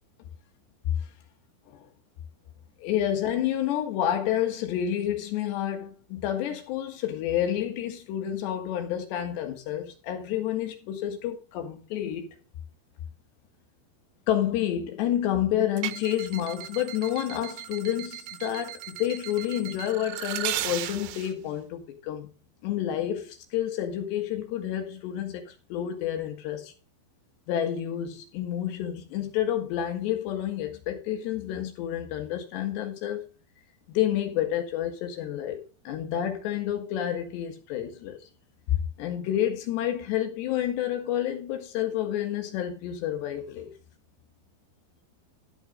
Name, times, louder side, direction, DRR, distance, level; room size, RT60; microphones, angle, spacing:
voice 1, 2.8-12.3 14.3-22.3 22.6-26.7 27.5-33.2 33.9-38.2 39.0-43.7, left 11 dB, 90° left, 3.8 m, -29 dB
sound 1, 15.8-21.3, right 13 dB, 80° right, 2.7 m, -36 dB
12.5 x 5.4 x 5.1 m
omnidirectional pair, 4.8 m